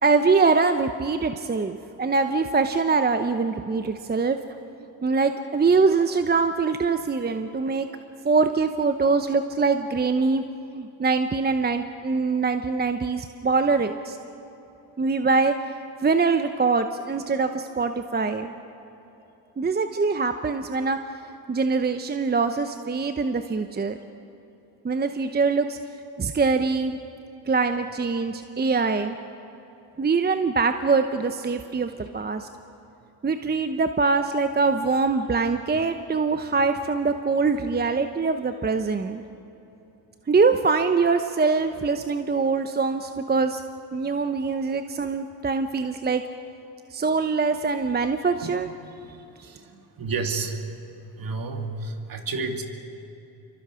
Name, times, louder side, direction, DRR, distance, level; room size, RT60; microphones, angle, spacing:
voice 1, 0.0-4.4 5.0-7.9 8.2-10.4 10.7-14.2 15.0-15.8 16.0-18.5 19.6-21.0 21.5-24.0 24.8-25.8 26.2-27.0 27.5-29.2 30.0-32.5 33.2-39.2 40.3-43.6 43.9-46.2 46.9-48.7, right 4 dB, 20° right, 8 dB, 0.9 m, -23 dB
voice 2, 49.4-50.7 51.2-52.6, right 4 dB, 50° right, 4 dB, 2.5 m, -31 dB
28.0 x 23.5 x 5.0 m, 3.0 s
cardioid pair, 85°, 45 cm